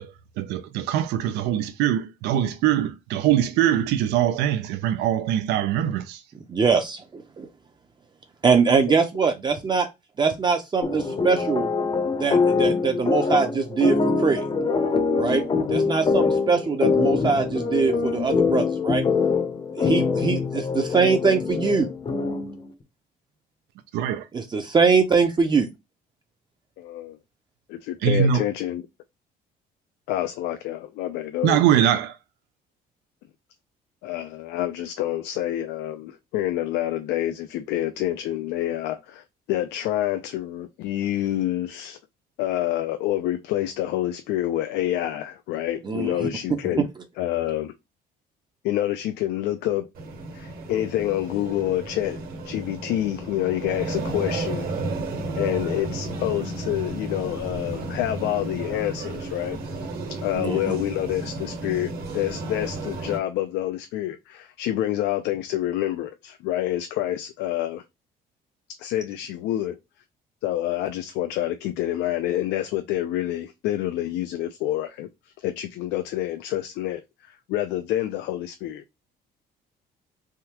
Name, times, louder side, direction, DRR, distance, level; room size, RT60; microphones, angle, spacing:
voice 1, 0.0-6.2 23.9-24.3 28.0-28.4 31.4-32.2, right 10 dB, 85° right, 0.4 m, -22 dB
voice 2, 6.5-7.5 8.4-9.9 10.2-11.7 12.2-14.4 15.2-15.4 15.7-19.0 19.8-21.9 24.3-25.7 45.9-46.1 46.8-46.9 60.4-60.8, right 5 dB, 25° right, 0.5 m, -22 dB
sound 1, 10.8-22.6, left 4 dB, 30° left, 0.6 m, -24 dB
voice 3, 26.8-27.2 27.7-28.8 30.1-31.6 34.0-42.0 42.4-46.9 47.2-47.7 48.6-49.9 50.3-52.2 52.4-54.7 55.3-59.6 60.2-67.8 68.8-69.8 70.4-75.1 75.4-78.8, left 13 dB, 85° left, 0.4 m, -27 dB
sound 2, 49.9-63.2, right 2 dB, 60° right, 1.4 m, -33 dB
3.5 x 2.2 x 2.8 m
cardioid pair, 110°, 17 cm